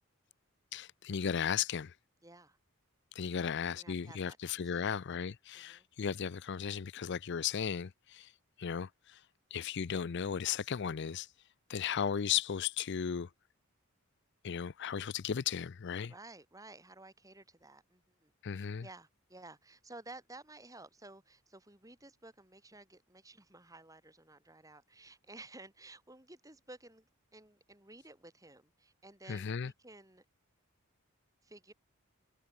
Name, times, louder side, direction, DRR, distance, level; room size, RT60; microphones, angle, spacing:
voice 1, 0.7-1.9 3.2-8.3 8.6-9.2 9.5-11.3 11.7-13.3 14.4-16.1 18.4-18.8 29.3-29.7, left 7 dB, 55° left, 0.5 m, -35 dB
voice 2, 2.2-2.6 3.3-4.9 5.5-5.9 16.1-30.2 31.4-31.7, right 2 dB, 15° right, 6.9 m, -54 dB
head